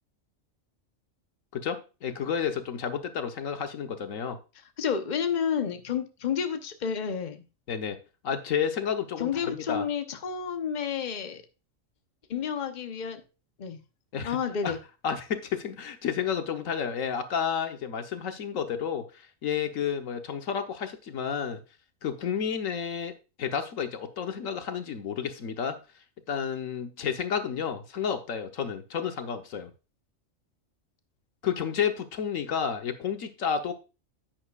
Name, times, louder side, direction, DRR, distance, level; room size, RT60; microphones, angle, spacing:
voice 1, 1.5-4.4 7.7-8.0 8.2-9.9 14.1-14.7 15.0-19.1 19.4-21.6 22.0-23.1 23.4-25.8 26.3-29.7 31.4-33.7, left 7 dB, 85° left, 7 dB, 1.4 m, -31 dB
voice 2, 4.8-7.4 9.2-11.4 12.3-13.2 13.6-13.8 14.2-14.8, left 7 dB, 40° left, 7 dB, 0.9 m, -30 dB
10.5 x 9.0 x 2.4 m, 0.30 s
omnidirectional pair, 1.3 m